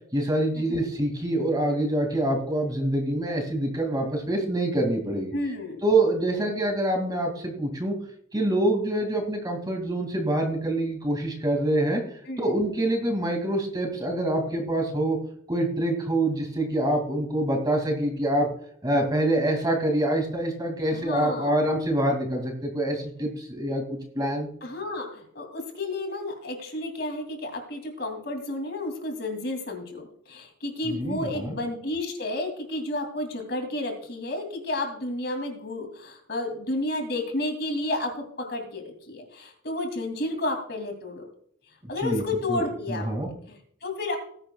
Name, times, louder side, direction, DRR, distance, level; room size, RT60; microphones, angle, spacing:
voice 1, 0.1-5.3 5.8-8.0 8.3-12.0 12.4-15.2 15.5-18.5 18.8-24.5 30.8-31.6 42.0-42.2 42.5-43.3, right 1 dB, 20° right, 2 dB, 2.4 m, -26 dB
voice 2, 5.3-5.8 12.3-12.6 20.9-21.6 24.6-41.3 41.9-43.0 43.5-44.2, left 2 dB, 55° left, 4 dB, 2.7 m, -31 dB
19.5 x 10.0 x 2.3 m, 0.64 s
head